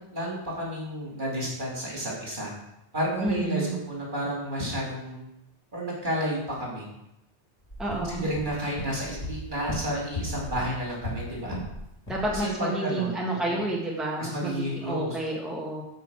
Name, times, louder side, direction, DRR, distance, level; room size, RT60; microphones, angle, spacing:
voice 1, 0.1-2.5 2.9-5.2 5.7-6.8 7.9-11.6 12.3-13.7 14.2-15.2, equal, 45° right, -4 dB, 3.3 m, -31 dB
voice 2, 3.2-3.8 7.8-8.3 12.1-15.8, right 2 dB, ahead, -3 dB, 1.6 m, -30 dB
sound 1, 7.7-11.8 12.1-12.4, left 1 dB, 35° left, 2.0 m, -36 dB
9.1 x 5.3 x 7.3 m, 0.84 s
omnidirectional pair, 1.2 m